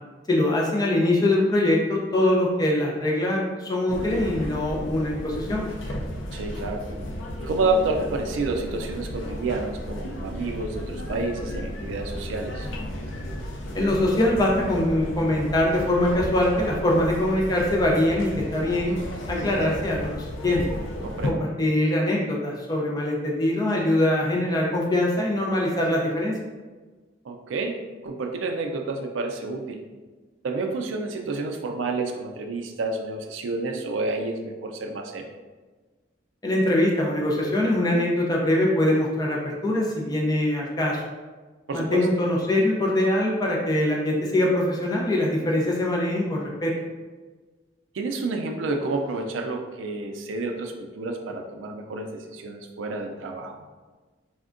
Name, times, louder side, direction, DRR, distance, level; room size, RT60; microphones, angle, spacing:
voice 1, 0.3-5.7 13.7-18.9 19.3-20.6 21.3-26.3 36.4-41.0 41.7-46.7, left 1 dB, 20° left, -3 dB, 0.4 m, -23 dB
sound 1, 3.9-21.3, equal, 80° left, 0.4 m, -34 dB
voice 2, 6.3-6.8 7.4-12.7 21.0-21.4 27.2-29.8 30.4-35.2 41.7-42.1 47.9-53.6, right 3 dB, 85° right, 3 dB, 0.4 m, -29 dB
3.4 x 2.1 x 2.4 m, 1.3 s
head